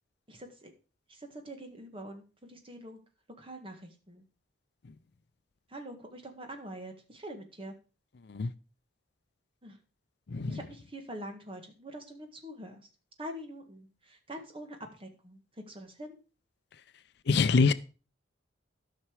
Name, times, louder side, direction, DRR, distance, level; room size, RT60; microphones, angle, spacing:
voice 1, 0.3-0.7 1.1-3.0 3.4-4.2 5.7-7.8 9.6-9.8 10.5-12.9 13.2-15.4 15.7-16.2, right 1 dB, 30° right, 1.8 m, -45 dB
voice 2, 10.3-10.6 17.3-17.7, left 4 dB, 60° left, 0.5 m, -24 dB
13.0 x 5.9 x 4.7 m
head